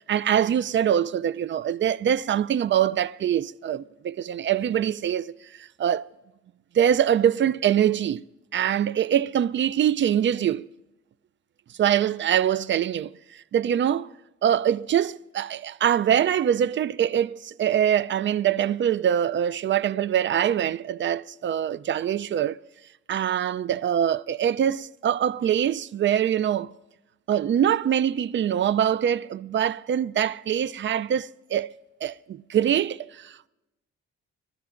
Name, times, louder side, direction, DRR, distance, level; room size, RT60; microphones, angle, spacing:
voice 1, 0.0-6.1 6.7-8.2 8.5-10.7 11.8-13.1 13.5-14.1 14.4-22.6 23.1-26.7 27.3-31.7 32.0-33.5, right 9 dB, 40° right, 0.4 m, -24 dB
26.5 x 12.5 x 2.5 m
cardioid pair, 90°, 30 cm